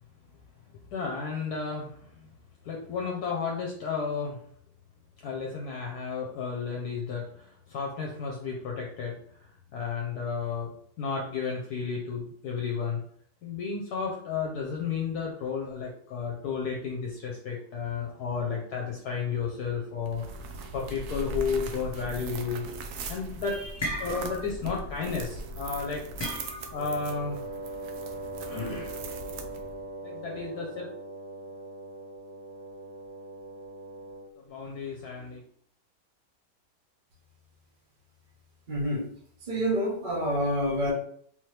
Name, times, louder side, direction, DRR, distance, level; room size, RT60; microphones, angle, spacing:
voice 1, 0.9-2.3 2.6-4.4 5.2-10.7 11.0-13.0 13.4-22.7 23.1-26.0 26.7-27.4 28.1-28.2 28.4-29.2 30.0-30.9 34.5-35.4, left 5 dB, 70° left, -1 dB, 1.1 m, -33 dB
sound 1, 20.0-29.9, right 3 dB, 75° right, 1.0 m, -40 dB
sound 2, 23.8-24.6 24.9-25.2 26.2-26.9, equal, 30° left, 0.5 m, -35 dB
Wind instrument woodwind instrument, 26.8-34.4, right 2 dB, 50° right, 0.6 m, -40 dB
voice 2, 38.7-39.1 39.4-40.9, equal, 35° right, -2 dB, 1.1 m, -27 dB
3.8 x 3.0 x 3.2 m, 0.63 s
omnidirectional pair, 1.8 m